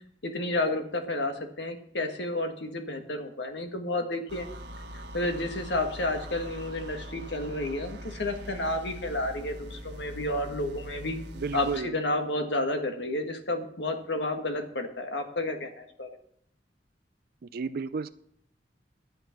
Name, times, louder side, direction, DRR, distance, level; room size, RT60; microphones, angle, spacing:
voice 1, 0.2-4.5 4.9-11.2 11.5-16.1, left 2 dB, 80° left, 5 dB, 1.7 m, -31 dB
sound 1, 4.3-11.9, equal, 80° right, 1.4 m, -42 dB
voice 2, 11.3-12.0 17.4-18.1, right 4 dB, 60° right, 11 dB, 0.4 m, -32 dB
12.5 x 9.0 x 5.8 m, 0.69 s
head